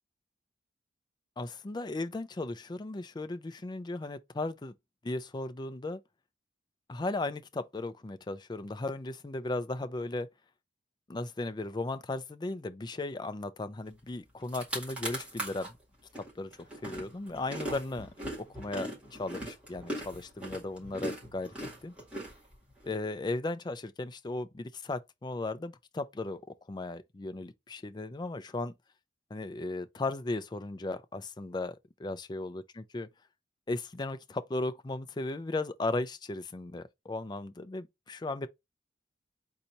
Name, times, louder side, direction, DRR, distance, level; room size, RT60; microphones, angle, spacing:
voice 1, 1.4-4.7 5.0-6.0 6.9-10.3 11.1-15.7 16.4-16.5 16.8-18.1 18.4-21.5 21.8-21.9 22.8-26.4 26.7-28.7 29.3-33.1 33.7-38.5, left 2 dB, 25° left, 0.4 m, -36 dB
sound 1, 14.1-14.2 14.4-15.7 16.1-22.9, right 1 dB, 5° right, 2.0 m, -39 dB
4.1 x 2.7 x 4.4 m
head